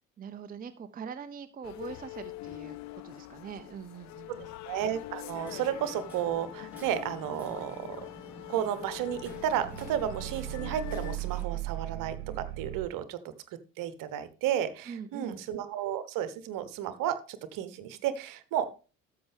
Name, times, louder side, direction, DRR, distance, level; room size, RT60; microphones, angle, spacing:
voice 1, 0.2-4.6 14.9-15.4, right 7 dB, 20° right, 9 dB, 0.7 m, -43 dB
sound 1, 1.6-11.2, left 17 dB, 45° left, 0.6 m, -44 dB
voice 2, 4.6-8.1 8.5-13.2 13.8-18.8, right 10 dB, 55° right, 13 dB, 1.2 m, -33 dB
Hammer, 5.3-11.4, left 1 dB, 5° right, 5.6 m, -50 dB
sound 2, 9.0-12.9, right 16 dB, 80° right, 0.5 m, -38 dB
13.5 x 5.6 x 3.5 m, 0.33 s
figure-of-eight pair, 55°, 40 cm